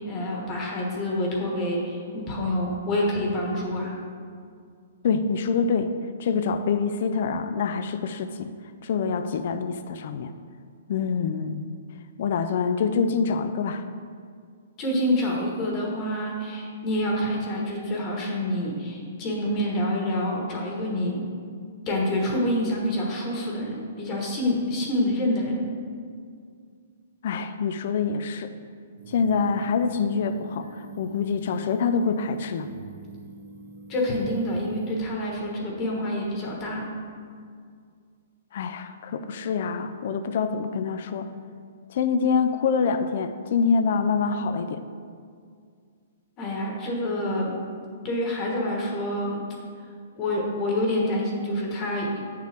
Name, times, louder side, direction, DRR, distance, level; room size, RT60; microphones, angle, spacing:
voice 1, 0.0-3.9 14.8-21.2 21.9-25.6 33.9-36.9 46.4-47.5 48.0-49.4 50.2-52.2, left 1 dB, 25° left, -2 dB, 1.3 m, -27 dB
voice 2, 5.0-5.9 6.2-8.5 8.8-10.3 10.9-11.7 12.2-13.8 27.2-28.5 29.1-32.7 38.5-41.3 41.9-44.8, left 5 dB, 55° left, 9 dB, 0.4 m, -25 dB
sound 1, 29.0-35.0, right 2 dB, 75° right, 0.8 m, -44 dB
8.4 x 6.6 x 3.4 m, 2.2 s
hypercardioid pair, 160°, 0 cm